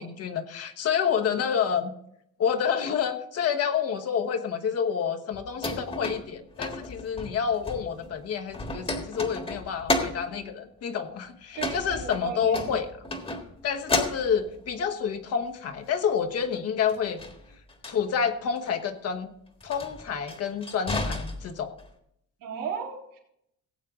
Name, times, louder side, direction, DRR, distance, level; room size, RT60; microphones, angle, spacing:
voice 1, 0.0-1.9 2.4-12.9 13.6-17.2 17.9-19.3 19.6-21.7, left 7 dB, 45° left, 5 dB, 1.2 m, -28 dB
sound 1, 5.3-8.2 8.5-10.3 11.5-13.5 13.9-14.7 16.9-18.0 18.6-18.8 19.6-21.9, left 2 dB, 15° left, 1.5 m, -32 dB
voice 2, 11.6-12.7 22.4-23.2, right 7 dB, 75° right, -1 dB, 3.5 m, -35 dB
17.5 x 8.4 x 3.7 m, 0.73 s
cardioid pair, 170°, 33 cm